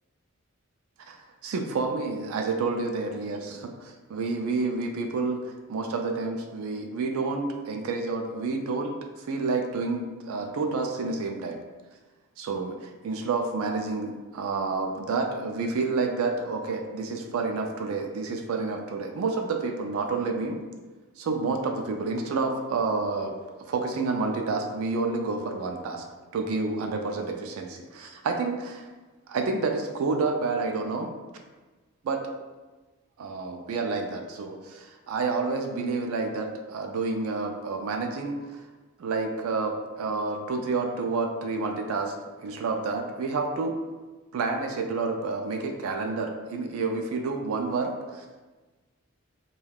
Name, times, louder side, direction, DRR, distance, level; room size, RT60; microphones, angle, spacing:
voice 1, 1.1-11.6 12.4-20.6 21.2-23.4 23.7-26.0 26.3-28.9 29.3-31.1 32.0-32.2 33.2-38.6 39.0-42.2 42.4-43.8 44.3-48.4, right 3 dB, 80° right, 3 dB, 0.3 m, -29 dB
2.3 x 2.2 x 3.3 m, 1.2 s
head